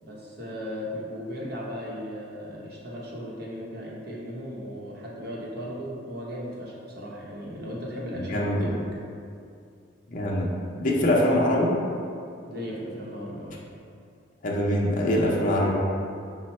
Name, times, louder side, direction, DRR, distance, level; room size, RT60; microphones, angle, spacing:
voice 1, 0.0-8.8 12.5-13.6, equal, 55° right, -4 dB, 0.8 m, -36 dB
voice 2, 8.1-8.7 10.1-10.5 10.8-11.7 14.4-15.7, left 1 dB, 45° left, -3 dB, 0.5 m, -23 dB
5.4 x 2.1 x 4.2 m, 2.5 s
head